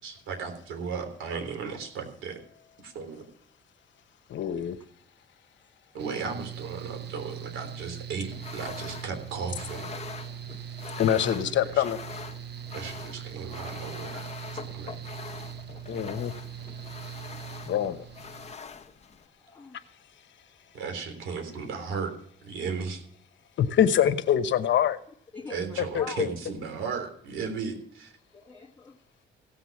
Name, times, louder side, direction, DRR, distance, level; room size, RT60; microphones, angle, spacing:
voice 1, 0.0-2.4 2.8-3.3 5.9-9.9 11.4-11.8 12.7-14.2 14.7-14.9 20.7-22.1 22.4-23.0 25.5-28.1, right 5 dB, 85° right, 3.5 m, -35 dB
voice 2, 4.3-4.8 11.0-12.0 15.9-16.3 17.7-18.0 23.6-25.0 25.9-26.3, left 9 dB, 70° left, 1.1 m, -24 dB
Mechanical fan, 6.0-18.5, right 9 dB, 60° right, 0.9 m, -41 dB
sound 1, 8.3-19.2, left 6 dB, 35° left, 1.2 m, -43 dB
voice 3, 19.4-19.8 25.3-26.2 28.3-29.0, left 5 dB, 10° left, 1.5 m, -43 dB
16.5 x 8.1 x 6.0 m
cardioid pair, 90°, 20 cm